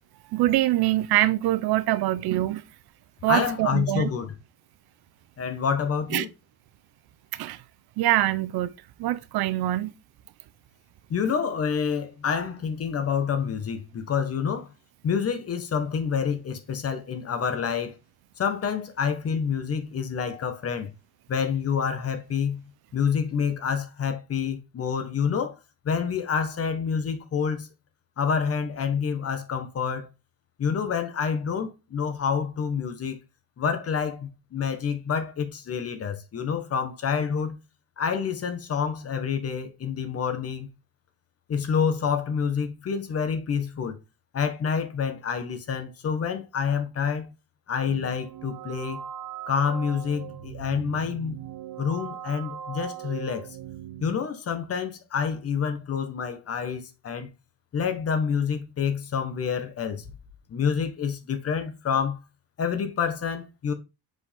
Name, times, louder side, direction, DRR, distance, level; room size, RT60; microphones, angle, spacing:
voice 1, 0.3-2.6 3.2-4.1 6.1-6.3 7.3-7.6 8.0-8.7 9.0-9.9, right 16 dB, 85° right, 0.7 m, -24 dB
voice 2, 3.3-4.3 5.4-6.3 11.1-14.7 15.0-17.9 18.4-20.9 21.3-25.6 25.8-27.7 28.2-30.1 30.6-33.2 33.6-37.6 38.0-40.7 41.5-44.0 44.3-47.3 47.7-49.0 49.5-51.4 51.8-53.6 54.0-57.3 57.7-60.1 60.5-62.2 62.6-63.7, left 6 dB, 40° left, 1.3 m, -28 dB
sound 1, 47.9-54.2, right 10 dB, 60° right, 0.9 m, -39 dB
6.2 x 5.3 x 3.6 m
cardioid pair, 155°, 37 cm